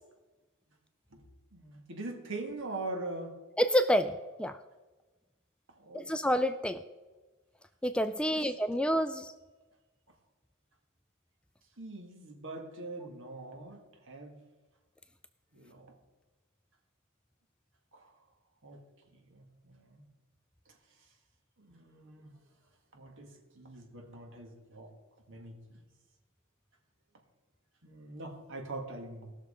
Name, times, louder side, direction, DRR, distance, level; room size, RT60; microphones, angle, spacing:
voice 1, 1.5-3.3 5.8-6.2 8.2-8.4 11.8-14.4 15.5-15.9 17.9-18.1 18.6-18.8 19.1-20.0 21.6-22.3 22.9-25.0 25.3-25.8 27.8-29.3, right 2 dB, 60° right, 3 dB, 1.8 m, -43 dB
voice 2, 3.6-4.1 4.4-4.6 5.9-6.8 7.8-9.3, equal, 5° left, 10 dB, 0.3 m, -28 dB
17.5 x 6.5 x 5.0 m, 1.2 s
head